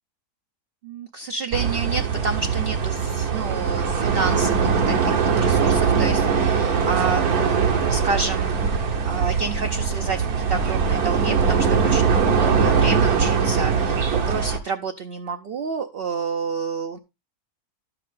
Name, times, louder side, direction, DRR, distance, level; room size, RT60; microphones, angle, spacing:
voice 1, 0.8-17.0, right 4 dB, 55° right, 5 dB, 0.7 m, -30 dB
sound 1, 1.5-14.6, right 6 dB, 70° right, 1.6 m, -21 dB
12.5 x 5.9 x 3.7 m, 0.25 s
omnidirectional pair, 1.6 m